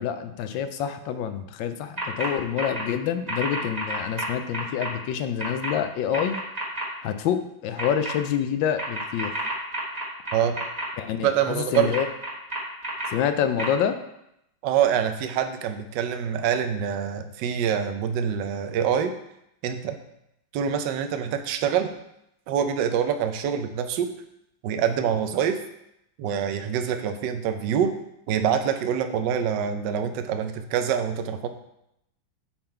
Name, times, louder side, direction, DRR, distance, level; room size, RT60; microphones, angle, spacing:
voice 1, 0.0-6.4 7.0-9.3 11.0-12.1 13.1-14.0, left 9 dB, 75° left, 10 dB, 1.2 m, -27 dB
sound 1, 2.0-2.3 2.6-2.8 3.3-4.9 5.4-5.7 6.1-6.8 7.8-8.1 8.8-10.8 11.7-13.1 13.6-13.7, right 2 dB, 25° right, 1.2 m, -30 dB
voice 2, 11.2-12.0 14.6-19.1 19.6-20.0 20.5-21.9 22.5-24.1 24.6-25.6 26.2-27.9 28.3-31.5, right 8 dB, 70° right, 7 dB, 1.2 m, -25 dB
8.8 x 3.8 x 4.4 m, 0.81 s
omnidirectional pair, 2.1 m